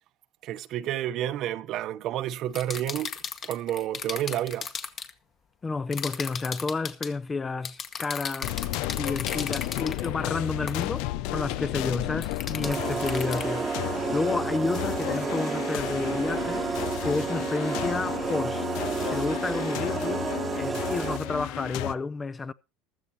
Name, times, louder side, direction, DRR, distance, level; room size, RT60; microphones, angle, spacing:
voice 1, 0.4-3.1 3.4-4.7, right 12 dB, 55° right, 0.9 m, -30 dB
sound 1, 2.5-5.1 5.9-7.1 7.6-10.1 10.7-10.9 12.2-13.5, left 6 dB, 40° left, 1.7 m, -35 dB
voice 2, 5.6-8.6 8.9-13.7 14.1-16.7 17.0-18.7 19.0-20.3 20.6-22.5, left 3 dB, 20° left, 0.6 m, -31 dB
sound 2, 8.4-21.9, left 16 dB, 70° left, 0.7 m, -33 dB
sound 3, 12.6-21.4, right 5 dB, 25° right, 1.1 m, -31 dB
15.0 x 13.5 x 3.0 m
supercardioid pair, 115°, 0 cm